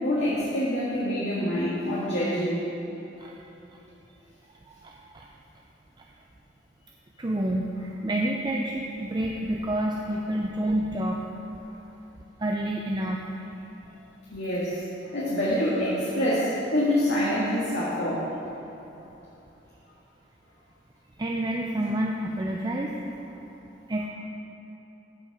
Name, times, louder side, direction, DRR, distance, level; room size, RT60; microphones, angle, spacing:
voice 1, 0.0-2.6 14.3-14.8 15.1-18.3, left 1 dB, 70° left, -9 dB, 2.0 m, -26 dB
voice 2, 4.7-5.3 7.2-11.3 12.4-13.3 13.9-14.1 21.2-23.0 23.9-24.1, right 1 dB, 25° right, -1 dB, 0.5 m, -29 dB
14.5 x 5.5 x 4.8 m, 3.0 s
head